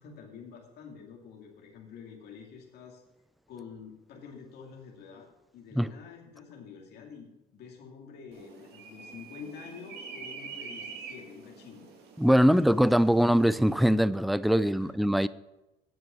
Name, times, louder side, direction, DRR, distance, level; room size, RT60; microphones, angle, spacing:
voice 1, 0.0-3.0 3.5-5.3 5.5-11.9 12.4-13.0 14.8-15.0, left 6 dB, 75° left, 2.4 m, -47 dB
sound 1, 8.3-13.9, right 5 dB, 75° right, 2.2 m, -46 dB
voice 2, 12.2-15.3, equal, ahead, 0.4 m, -22 dB
9.5 x 7.9 x 7.0 m
cardioid pair, 110°, 17 cm